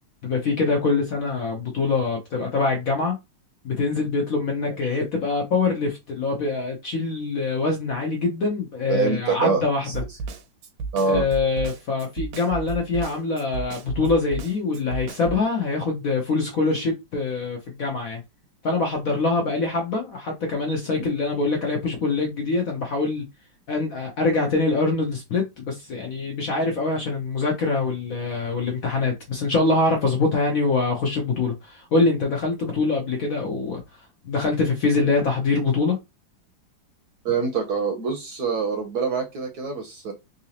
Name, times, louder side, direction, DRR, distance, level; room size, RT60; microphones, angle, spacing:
voice 1, 0.2-3.2 3.6-9.9 11.0-18.2 18.6-23.2 23.7-33.8 34.2-36.0, left 3 dB, 60° left, 0.9 m, -24 dB
voice 2, 4.6-4.9 8.9-9.9 10.9-11.2 37.2-40.1, right 4 dB, 65° right, 1.1 m, -25 dB
Snare drum, 9.9-15.4, right 4 dB, 80° right, 1.5 m, -33 dB
3.8 x 2.7 x 2.8 m
omnidirectional pair, 2.2 m